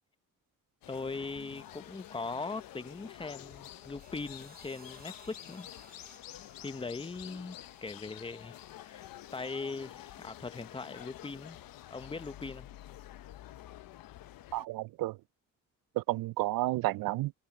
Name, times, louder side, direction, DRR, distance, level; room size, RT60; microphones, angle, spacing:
sound 1, 0.8-14.6, left 13 dB, 85° left, 0.9 m, -49 dB
voice 1, 0.9-5.7 6.6-8.6 8.8-9.0 9.3-11.6 11.9-12.7, left 3 dB, 15° left, 0.8 m, -40 dB
Sawing, 1.1-11.4, right 4 dB, 25° right, 4.3 m, -63 dB
voice 2, 14.5-15.2 16.0-17.3, right 18 dB, 85° right, 0.5 m, -31 dB
cardioid pair, 105°, 33 cm